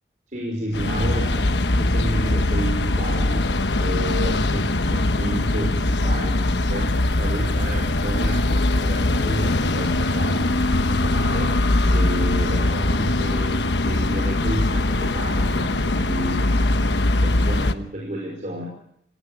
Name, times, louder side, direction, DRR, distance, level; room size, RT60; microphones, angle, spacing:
voice 1, 0.3-3.5 3.8-6.9 7.2-10.5 10.8-11.5 11.9-16.6 16.8-17.0 17.2-18.7, right 1 dB, 45° right, 0 dB, 5.5 m, -31 dB
sound 1, 0.7-17.7, left 2 dB, 85° left, 1.2 m, -21 dB
28.0 x 19.5 x 7.0 m, 0.72 s
head